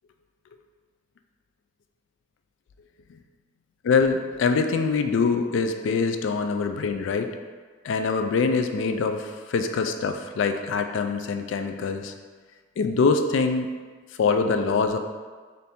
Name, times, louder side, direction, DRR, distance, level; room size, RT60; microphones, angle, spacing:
voice 1, 3.9-7.3 7.8-12.1 12.8-13.7 14.2-15.0, left 4 dB, 80° left, 7 dB, 0.3 m, -24 dB
4.1 x 2.6 x 3.5 m, 1.5 s
head